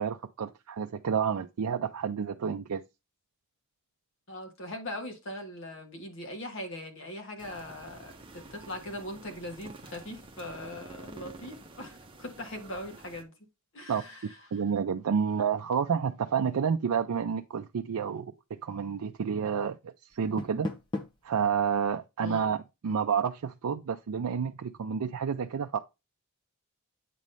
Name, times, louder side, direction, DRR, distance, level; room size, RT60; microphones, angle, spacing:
voice 1, 0.0-2.8 13.9-14.0 14.5-20.7 21.2-25.8, right 7 dB, 80° right, 0.4 m, -30 dB
voice 2, 4.3-13.3 13.7-14.3 22.2-22.5, left 1 dB, 55° left, 1.5 m, -40 dB
sound 1, 7.4-13.2, right 2 dB, 25° right, 0.8 m, -49 dB
Door, 20.1-21.3, left 2 dB, 20° left, 0.8 m, -37 dB
8.4 x 3.1 x 5.3 m
head